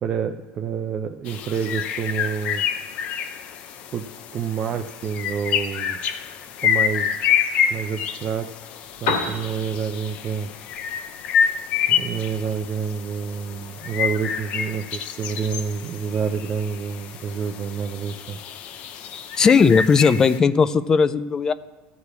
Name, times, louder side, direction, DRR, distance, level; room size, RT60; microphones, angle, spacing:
voice 1, 0.0-2.6 3.9-6.0 6.6-7.2 7.7-8.5 9.0-10.5 11.9-18.4, right 6 dB, 35° right, 5 dB, 0.5 m, -28 dB
sound 1, 1.3-20.4, left 8 dB, 50° left, 0.7 m, -28 dB
Piano, 8.8-16.8, left 4 dB, 85° left, 2.2 m, -36 dB
voice 2, 19.4-21.5, left 5 dB, 20° left, 14 dB, 0.4 m, -17 dB
13.5 x 4.9 x 8.2 m, 1.3 s
supercardioid pair, 135°, 3 cm